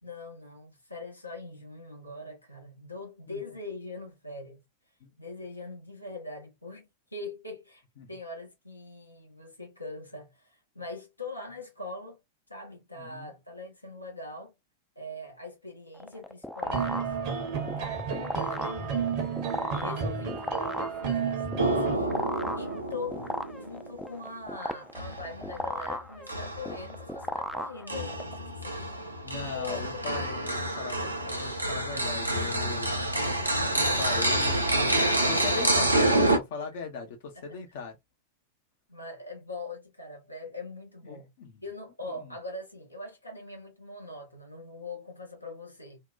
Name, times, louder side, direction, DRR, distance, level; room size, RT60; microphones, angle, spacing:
voice 1, 0.0-4.6 5.2-7.8 8.1-12.2 12.5-14.5 15.0-17.2 17.8-19.2 19.7-22.2 22.5-23.3 23.5-28.8 29.5-30.0 38.9-41.3 41.6-46.0, left 2 dB, 85° left, 0.7 m, -42 dB
voice 2, 13.0-13.3 29.2-32.9 33.7-38.0 41.0-41.6 42.1-42.3, left 5 dB, 55° left, 0.6 m, -40 dB
sound 1, 15.9-28.3, left 1 dB, 5° left, 0.3 m, -36 dB
sound 2, 16.6-22.0, right 6 dB, 45° right, 0.7 m, -32 dB
sound 3, 21.6-24.2 24.9-25.9 26.3-27.2 27.9-36.4, right 1 dB, 85° right, 0.5 m, -28 dB
2.6 x 2.1 x 2.3 m
figure-of-eight pair, 90°, 0 cm